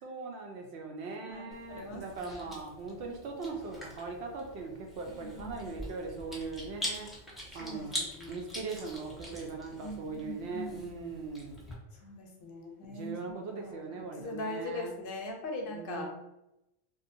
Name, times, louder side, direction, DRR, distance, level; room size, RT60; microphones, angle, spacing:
voice 1, 0.0-7.1 7.5-8.0 8.3-11.6 12.9-14.9 15.7-16.1, right 4 dB, 90° right, 2 dB, 0.8 m, -40 dB
voice 2, 1.3-2.5 5.1-5.7 7.5-8.4 9.8-10.9 12.0-16.1, left 2 dB, 65° left, 1 dB, 0.7 m, -41 dB
Chewing mastication, 1.5-11.7, equal, ahead, 0.4 m, -44 dB
2.6 x 2.1 x 2.6 m, 0.90 s
omnidirectional pair, 1.0 m